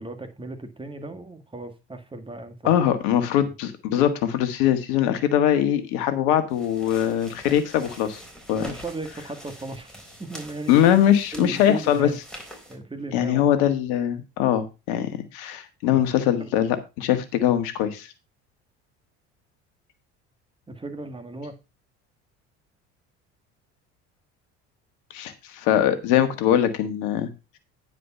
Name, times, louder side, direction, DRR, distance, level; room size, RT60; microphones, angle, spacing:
voice 1, 0.0-2.7 8.6-9.9 10.2-10.9 11.3-12.2 12.7-13.5 15.9-16.0 16.4-16.5 20.7-21.6, right 2 dB, 15° right, 2.0 m, -36 dB
voice 2, 2.6-8.2 8.5-8.7 10.7-12.1 13.1-18.1 25.1-27.3, left 10 dB, 75° left, 1.6 m, -22 dB
sound 1, 6.5-12.8, equal, ahead, 4.0 m, -44 dB
9.7 x 5.0 x 5.6 m
hypercardioid pair, 70°, 34 cm